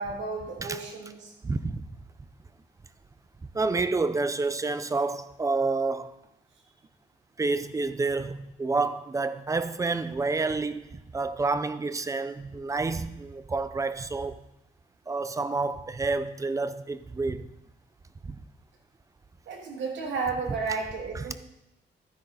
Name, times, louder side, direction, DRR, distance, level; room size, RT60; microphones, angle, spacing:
voice 1, 0.0-1.3 19.5-21.3, right 4 dB, 80° right, 2.7 m, -32 dB
voice 2, 1.4-1.8 3.5-6.1 7.4-14.4 15.1-17.5 18.2-18.4 21.1-21.3, right 3 dB, 15° right, 0.5 m, -29 dB
12.0 x 10.0 x 4.0 m
wide cardioid pair, 160°, 18 cm